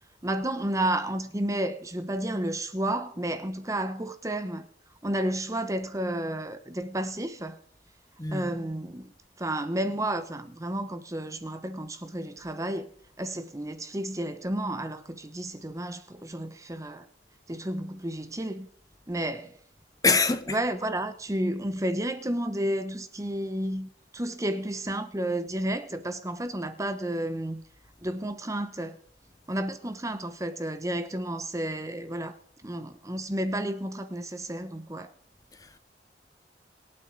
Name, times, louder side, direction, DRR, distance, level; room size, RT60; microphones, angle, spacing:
voice 1, 0.2-4.7 5.0-7.6 8.3-12.9 13.2-17.1 17.5-18.7 19.1-19.6 20.5-27.6 28.0-29.0 29.5-32.4 32.6-35.1, right 1 dB, 20° right, 0.9 m, -31 dB
voice 2, 8.2-8.5 20.0-20.6 35.5-35.8, left 4 dB, 20° left, 0.8 m, -25 dB
25.0 x 9.2 x 3.9 m
head